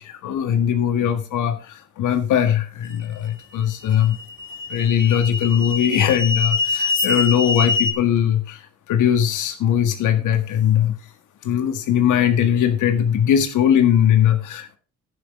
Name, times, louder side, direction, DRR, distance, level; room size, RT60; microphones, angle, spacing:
voice 1, 0.0-1.6 2.0-4.2 4.7-8.6 8.9-11.0 11.4-14.8, left 9 dB, 80° left, 9 dB, 1.7 m, -20 dB
sound 1, 2.9-3.0 3.8-7.9, left 4 dB, 40° left, 2.1 m, -24 dB
10.5 x 10.5 x 3.5 m, 0.35 s
cardioid pair, 90°, 30 cm